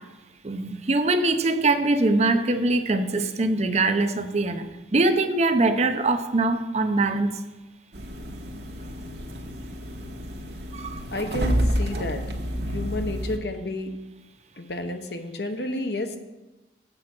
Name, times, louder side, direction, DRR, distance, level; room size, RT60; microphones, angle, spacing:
voice 1, 0.4-7.3 10.7-11.0 11.9-12.0, right 2 dB, 40° right, 8 dB, 0.6 m, -23 dB
sound 1, 7.9-13.4, equal, 65° right, 1.1 m, -29 dB
voice 2, 11.1-12.2 12.7-13.9 14.6-16.2, left 1 dB, 65° left, 6 dB, 0.9 m, -31 dB
7.6 x 7.5 x 6.0 m, 1.1 s
head